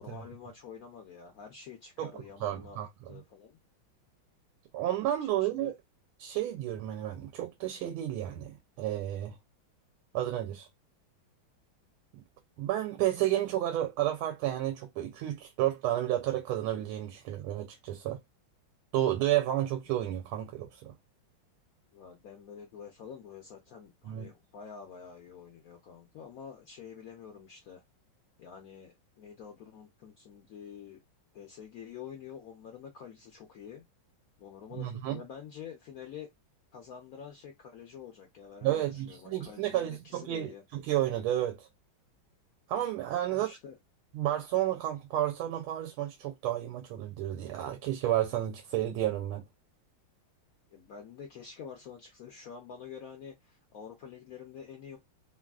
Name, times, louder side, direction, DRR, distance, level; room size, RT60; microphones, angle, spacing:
voice 1, 0.0-2.8 3.1-3.6 5.3-5.7 21.9-27.8 28.4-31.0 31.3-33.8 34.4-36.3 36.7-40.6 43.3-43.8 50.7-55.0, left 7 dB, 90° left, 0.7 m, -47 dB
voice 2, 2.4-3.2 4.7-5.7 6.2-9.3 10.1-10.7 12.1-12.2 12.6-18.2 18.9-20.9 24.0-24.3 34.7-35.2 38.6-41.7 42.7-43.5 44.1-49.4, right 13 dB, 85° right, 1.4 m, -31 dB
3.4 x 2.3 x 2.3 m
omnidirectional pair, 2.3 m